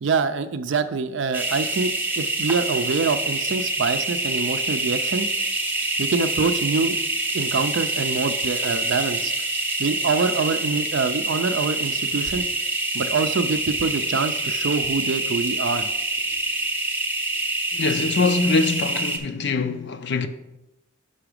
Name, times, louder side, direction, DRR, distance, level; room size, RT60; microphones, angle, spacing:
voice 1, 0.0-5.3 6.0-7.0 7.3-9.3 9.8-12.5 12.9-15.9, right 4 dB, 60° right, 0.4 m, -25 dB
sound 1, 1.3-19.2, right 2 dB, 10° right, 0.6 m, -26 dB
voice 2, 17.7-20.3, left 3 dB, 60° left, 0.5 m, -23 dB
5.9 x 5.6 x 5.0 m
head